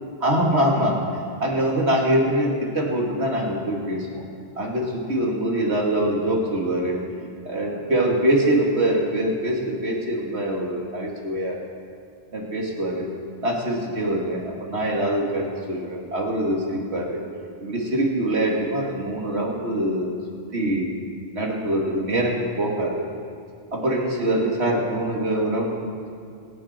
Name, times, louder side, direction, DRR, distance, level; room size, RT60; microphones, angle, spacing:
voice 1, 0.2-4.2 4.6-7.0 7.4-11.6 12.3-13.1 13.4-17.2 17.6-20.2 20.5-20.9 21.3-23.0 23.7-26.1, right 1 dB, 80° right, -1 dB, 2.6 m, -24 dB
26.0 x 10.0 x 4.4 m, 2.4 s
omnidirectional pair, 1.1 m